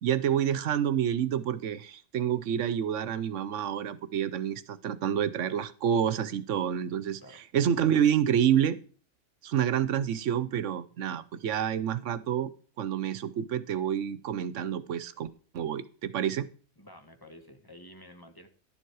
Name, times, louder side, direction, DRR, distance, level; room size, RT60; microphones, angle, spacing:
voice 1, 0.0-7.2 7.5-8.8 9.4-12.5 12.8-15.3 15.5-16.5, right 9 dB, 85° right, 16 dB, 1.1 m, -28 dB
voice 2, 16.8-18.5, left 1 dB, 20° left, 6 dB, 1.4 m, -51 dB
11.5 x 7.4 x 4.7 m, 0.41 s
omnidirectional pair, 1.2 m